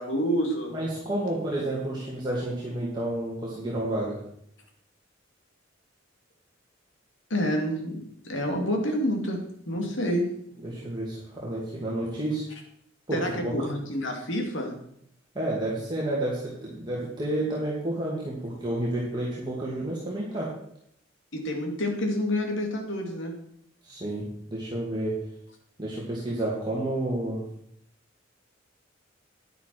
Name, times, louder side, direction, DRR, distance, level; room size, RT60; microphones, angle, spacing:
voice 1, 0.0-0.8 7.3-10.3 13.1-14.8 21.3-23.3, equal, 75° left, 2 dB, 2.5 m, -28 dB
voice 2, 0.7-4.2 10.6-12.5 13.1-13.6 15.3-20.5 23.8-25.1 25.8-27.4, right 1 dB, 20° right, -5 dB, 2.2 m, -30 dB
10.0 x 10.0 x 4.6 m, 0.68 s
head